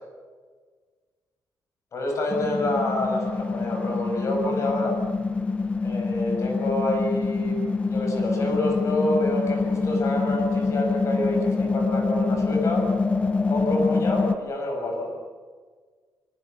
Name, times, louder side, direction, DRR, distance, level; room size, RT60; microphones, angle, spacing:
voice 1, 1.9-5.0 5.8-7.6 7.9-12.9 13.5-15.1, left 1 dB, 45° left, 2 dB, 7.1 m, -27 dB
sound 1, 2.3-14.3, left 4 dB, 15° left, 0.9 m, -25 dB
25.0 x 24.0 x 7.0 m, 1.5 s
wide cardioid pair, 165°, 7 cm